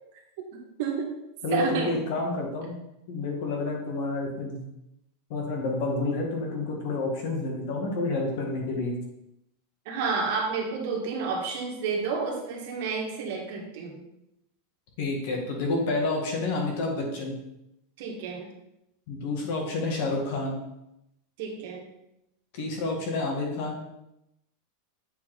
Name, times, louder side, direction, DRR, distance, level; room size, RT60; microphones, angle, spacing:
voice 1, 0.8-1.1 1.5-2.0 9.9-14.0 18.0-18.5 21.4-21.8, right 5 dB, 55° right, 0 dB, 1.7 m, -30 dB
voice 2, 1.4-2.8 3.1-4.6 5.3-8.9 15.0-17.3 19.1-20.6 22.5-23.8, left 2 dB, 55° left, 1 dB, 1.6 m, -29 dB
7.5 x 4.1 x 3.9 m, 0.84 s
supercardioid pair, 160°, 0 cm